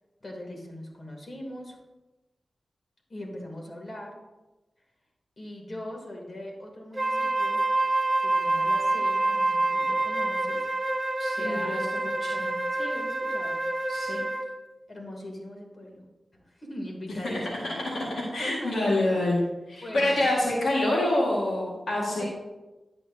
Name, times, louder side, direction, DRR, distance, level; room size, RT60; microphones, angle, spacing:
voice 1, 0.2-1.8 3.1-4.1 5.4-7.6 8.2-10.7 11.3-12.3 12.7-13.6 14.9-16.0 16.3-17.7 18.4-19.2 19.8-20.2 21.9-22.3, left 1 dB, 50° left, 0 dB, 2.8 m, -40 dB
Wind instrument woodwind instrument, 6.9-14.6, right 2 dB, 35° right, 1.0 m, -27 dB
voice 2, 11.2-12.6 13.9-14.2 17.9-18.0 18.3-19.4 19.7-22.2, left 1 dB, 85° left, -4 dB, 1.8 m, -27 dB
10.5 x 8.7 x 2.8 m, 1.1 s
cardioid pair, 45°, 0 cm